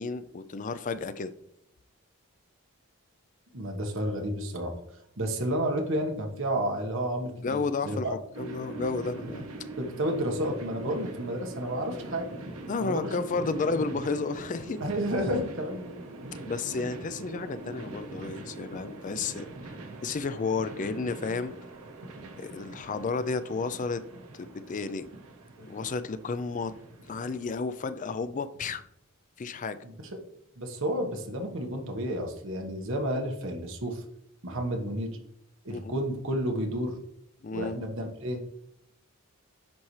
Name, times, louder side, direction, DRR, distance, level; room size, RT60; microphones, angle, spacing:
voice 1, 0.0-1.3 7.4-9.5 12.7-14.8 16.5-19.5 20.0-21.5 22.4-24.0 24.4-25.1 25.6-26.7 27.1-28.8 29.4-29.8 35.7-36.0 37.4-37.9, left 4 dB, 35° left, 12 dB, 0.4 m, -32 dB
voice 2, 3.5-4.7 5.2-8.1 9.8-12.3 12.8-13.4 13.7-13.8 14.8-15.9 29.8-30.1 30.6-34.0 34.4-35.1 35.6-37.0 37.5-38.4, right 1 dB, 60° right, 3 dB, 1.4 m, -31 dB
sound 1, 8.3-27.6, right 2 dB, 80° right, 1.1 m, -43 dB
10.5 x 4.3 x 3.2 m, 0.74 s
head